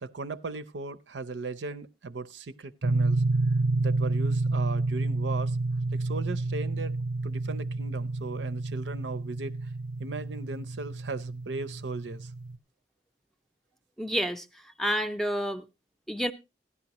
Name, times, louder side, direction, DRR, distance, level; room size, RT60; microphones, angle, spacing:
voice 1, 0.0-3.2 3.8-5.6 5.9-7.0 7.2-9.7 10.0-12.3, right 3 dB, 85° right, 0.6 m, -37 dB
sound 1, 2.8-12.6, right 2 dB, 45° right, 0.5 m, -29 dB
voice 2, 14.0-15.6 16.1-16.3, equal, ahead, 0.5 m, -29 dB
15.5 x 11.0 x 3.0 m
head